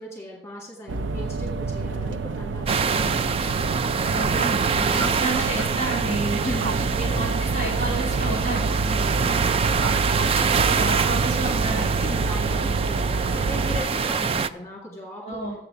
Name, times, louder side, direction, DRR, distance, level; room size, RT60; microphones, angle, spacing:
voice 1, 0.0-3.4 4.7-5.2 6.3-7.2 8.8-10.5 12.0-15.4, left 1 dB, 15° left, -1 dB, 2.0 m, -37 dB
sound 1, 0.9-13.8, right 3 dB, 90° right, 0.5 m, -28 dB
sound 2, 2.7-14.5, right 5 dB, 30° right, 0.3 m, -25 dB
voice 2, 4.1-4.6 4.9-6.3 7.0-8.6 9.2-9.5 10.2-12.1 15.2-15.5, right 2 dB, 50° right, -4 dB, 4.4 m, -30 dB
7.5 x 6.8 x 7.1 m, 0.81 s
head